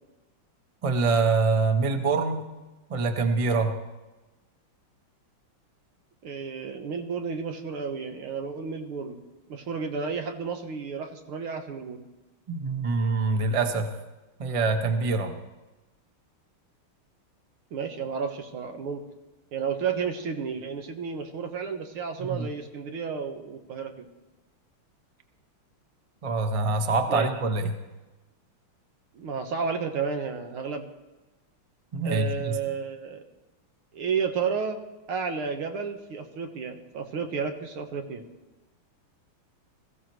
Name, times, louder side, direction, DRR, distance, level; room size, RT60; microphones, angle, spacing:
voice 1, 0.8-2.4 2.9-3.8 12.5-13.9 14.4-15.3 22.2-22.5 26.2-27.7 31.9-32.6, right 3 dB, 30° right, 5 dB, 0.6 m, -25 dB
voice 2, 6.2-9.2 9.5-12.0 17.7-19.0 19.5-24.1 27.1-27.3 29.1-30.9 32.0-33.2 33.9-34.8 35.1-38.2, right 5 dB, 80° right, 5 dB, 2.1 m, -32 dB
21.5 x 15.0 x 3.1 m, 1.1 s
omnidirectional pair, 2.4 m